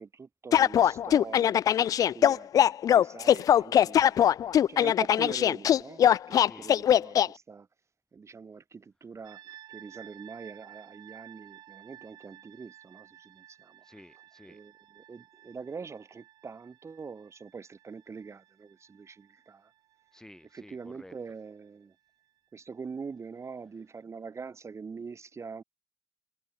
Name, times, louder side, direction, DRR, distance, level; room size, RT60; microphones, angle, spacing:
voice 1, 0.0-4.4 4.7-7.7 8.1-13.8 14.5-19.7 20.5-22.0 22.5-25.6, right 5 dB, 40° right, 5.5 m, -44 dB
sound 1, 0.5-7.3, left 10 dB, 50° left, 0.4 m, -21 dB
sound 2, 9.2-22.1, right 13 dB, 65° right, 5.9 m, -55 dB
voice 2, 13.8-14.6 20.1-21.1, left 1 dB, 10° left, 3.4 m, -52 dB
hypercardioid pair, 50°, 8 cm